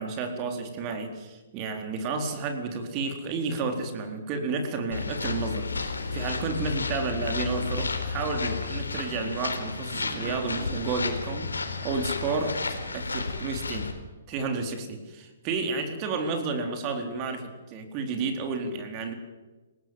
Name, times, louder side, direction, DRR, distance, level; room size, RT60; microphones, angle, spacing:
voice 1, 0.0-13.9 14.3-19.1, right 4 dB, 30° right, 6 dB, 4.1 m, -31 dB
sound 1, 4.9-13.9, left 4 dB, 75° left, 4.3 m, -32 dB
sound 2, 7.1-13.3, right 3 dB, 60° right, 7.6 m, -48 dB
29.5 x 19.0 x 7.9 m, 1.2 s
figure-of-eight pair, 120°, 0 cm